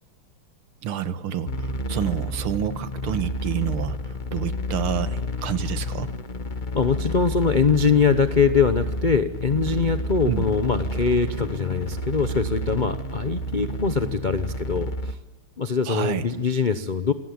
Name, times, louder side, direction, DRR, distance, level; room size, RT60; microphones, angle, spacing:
voice 1, 0.8-6.1 10.2-10.4 15.9-16.2, right 9 dB, 80° right, 12 dB, 2.1 m, -28 dB
sound 1, 1.5-15.1, left 1 dB, 30° left, 1.0 m, -30 dB
voice 2, 6.7-15.1 15.6-17.1, left 5 dB, 55° left, 11 dB, 0.5 m, -22 dB
28.0 x 18.5 x 9.5 m, 1.2 s
omnidirectional pair, 2.4 m